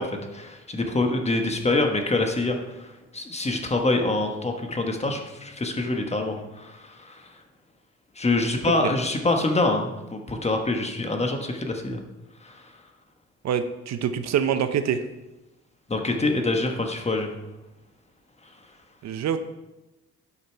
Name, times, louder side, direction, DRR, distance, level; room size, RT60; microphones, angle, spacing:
voice 1, 0.0-7.3 8.2-12.0 12.4-12.6 15.9-17.3, left 2 dB, 20° left, 4 dB, 1.2 m, -25 dB
voice 2, 13.4-15.0 19.0-19.4, right 8 dB, 60° right, 10 dB, 0.7 m, -25 dB
8.5 x 5.4 x 4.5 m, 1.0 s
cardioid pair, 90°, 30 cm